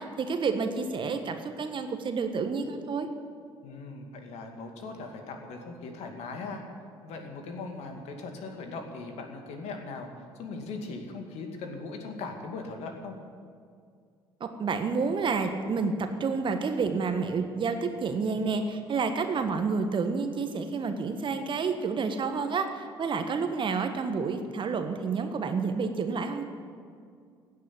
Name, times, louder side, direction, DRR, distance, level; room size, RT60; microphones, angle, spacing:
voice 1, 0.0-3.1 14.4-26.4, right 4 dB, 40° right, 7 dB, 1.5 m, -29 dB
voice 2, 3.6-6.6 7.0-13.2, left 3 dB, 60° left, 4 dB, 2.3 m, -39 dB
16.5 x 8.4 x 10.0 m, 2.2 s
figure-of-eight pair, 55°, 13 cm